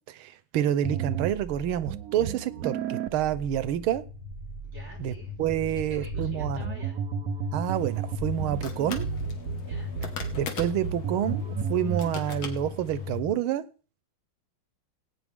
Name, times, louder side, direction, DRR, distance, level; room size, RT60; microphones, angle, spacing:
voice 1, 0.1-4.0 5.0-5.1 5.4-6.6 7.5-9.1 10.3-13.6, right 10 dB, 90° right, 16 dB, 1.6 m, -28 dB
sound 1, 0.8-12.1, right 8 dB, 55° right, 1.1 m, -34 dB
sound 2, 3.3-13.3, left 8 dB, 60° left, 1.7 m, -39 dB
voice 2, 4.6-5.4 5.9-7.0 9.6-9.9, right 2 dB, 30° right, -2 dB, 5.4 m, -49 dB
sound 3, 7.6-13.2, left 6 dB, 80° left, 2.2 m, -42 dB
18.5 x 9.1 x 3.6 m, 0.36 s
omnidirectional pair, 2.3 m